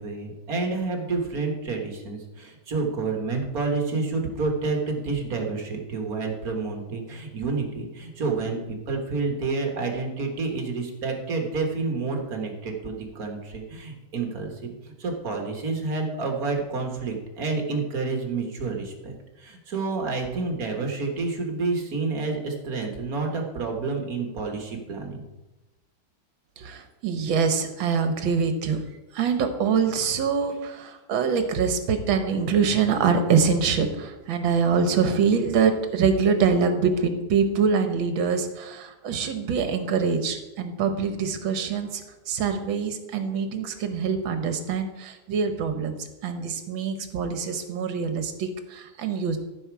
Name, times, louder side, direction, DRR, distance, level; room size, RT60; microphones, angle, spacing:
voice 1, 0.0-25.2, right 4 dB, 45° right, 2 dB, 1.8 m, -29 dB
voice 2, 26.6-28.8 29.1-49.4, right 5 dB, 70° right, 7 dB, 1.8 m, -24 dB
14.0 x 6.1 x 4.7 m, 1.1 s
omnidirectional pair, 2.3 m